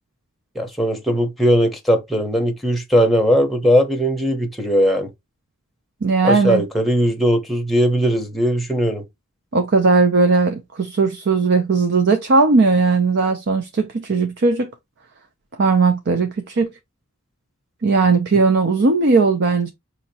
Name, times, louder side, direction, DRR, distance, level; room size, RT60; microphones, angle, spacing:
voice 1, 0.5-5.1 6.2-9.0, equal, ahead, 0.9 m, -19 dB
voice 2, 6.0-6.6 9.5-14.7 15.6-16.7 17.8-19.7, right 4 dB, 55° right, 0.6 m, -17 dB
5.1 x 2.8 x 2.8 m
head